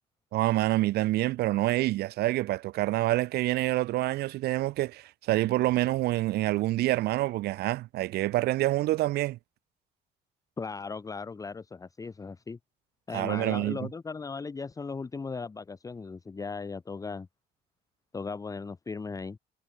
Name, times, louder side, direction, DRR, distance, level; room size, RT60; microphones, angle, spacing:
voice 1, 0.3-9.4 13.1-13.8, right 17 dB, 70° right, 0.6 m, -27 dB
voice 2, 10.6-12.6 13.1-17.3 18.1-19.4, left 4 dB, 20° left, 0.9 m, -37 dB
cardioid pair, 110°, 17 cm